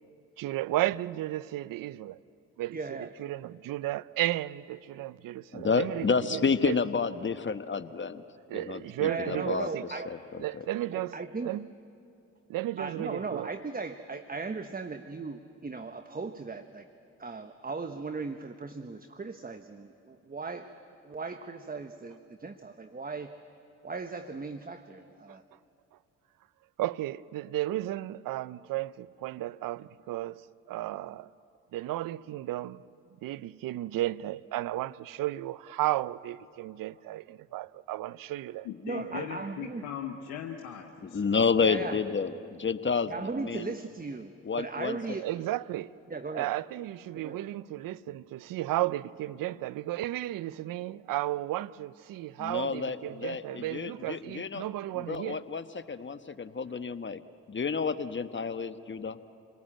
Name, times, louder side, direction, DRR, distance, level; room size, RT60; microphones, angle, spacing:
voice 1, 0.4-2.2 2.6-6.8 8.5-9.8 10.4-11.1 11.4-11.7 12.5-13.5 25.3-25.4 26.8-30.4 30.7-31.3 31.7-32.8 33.2-38.7 39.1-39.3 45.2-45.9 46.3-55.4, right 15 dB, 70° right, 0.6 m, -34 dB
voice 2, 2.7-3.1 9.0-10.1 10.9-11.5 12.8-16.9 17.2-20.7 21.0-23.3 23.8-25.4 38.8-39.9 41.6-42.0 43.1-45.2 46.1-46.5 47.1-47.4, right 4 dB, 25° right, 1.1 m, -37 dB
voice 3, 5.5-8.2 8.5-9.7 10.1-10.6 41.0-43.7 44.4-45.0 52.4-54.6 55.0-57.2 57.5-59.2, left 5 dB, 35° left, 1.1 m, -30 dB
voice 4, 38.6-41.2, left 9 dB, 85° left, 1.2 m, -39 dB
28.5 x 19.0 x 8.9 m
hypercardioid pair, 50°, 35 cm